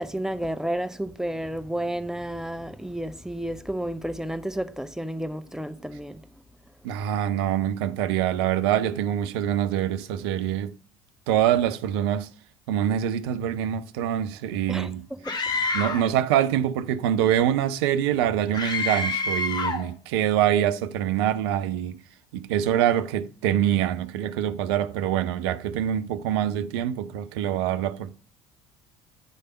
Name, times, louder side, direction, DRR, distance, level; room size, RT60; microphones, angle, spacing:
voice 1, 0.0-6.2 14.7-14.9 15.3-15.4, right 1 dB, 5° right, 0.6 m, -31 dB
voice 2, 6.8-10.7 11.3-12.3 12.7-15.0 15.7-22.0 22.3-28.2, right 10 dB, 65° right, 0.5 m, -25 dB
Screaming, 15.3-16.1 18.5-19.9, left 3 dB, 30° left, 1.0 m, -27 dB
10.0 x 3.4 x 5.4 m
figure-of-eight pair, 60°, 14 cm